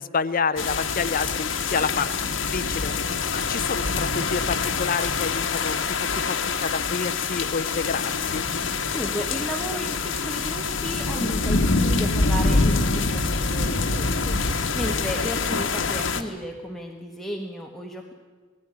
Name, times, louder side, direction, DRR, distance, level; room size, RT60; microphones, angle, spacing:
voice 1, 0.0-2.1 2.5-2.9 3.3-5.8 6.3-8.4, left 5 dB, 45° left, 10 dB, 0.7 m, -28 dB
sound 1, 0.6-16.2, left 4 dB, 80° left, 1.4 m, -25 dB
voice 2, 8.6-18.1, equal, ahead, 0 dB, 1.3 m, -34 dB
18.5 x 15.0 x 9.7 m, 1.4 s
head